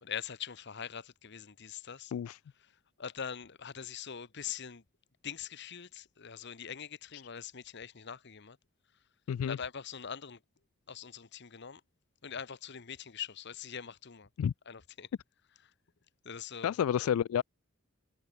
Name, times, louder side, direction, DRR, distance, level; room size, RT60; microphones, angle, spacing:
voice 1, 0.0-2.1 2.6-4.8 5.2-8.6 9.5-10.4 10.9-11.8 12.2-14.3 14.7-15.1 15.6-15.7 16.2-16.7, left 7 dB, 55° left, 1.0 m, -43 dB
voice 2, 16.6-17.4, left 9 dB, 85° left, 0.3 m, -30 dB
head